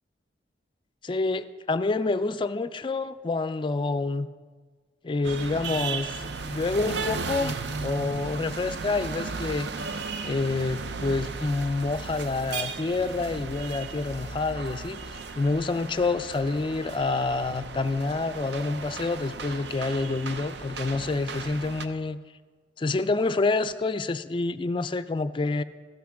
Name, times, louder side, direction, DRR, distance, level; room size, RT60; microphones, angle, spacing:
voice 1, 1.0-4.3 5.0-9.7 10.2-15.0 15.4-22.2 22.8-25.6, left 3 dB, 30° left, 13 dB, 0.4 m, -28 dB
sound 1, 5.2-21.9, right 4 dB, 70° right, 0.6 m, -35 dB
14.0 x 5.8 x 6.3 m, 1.5 s
head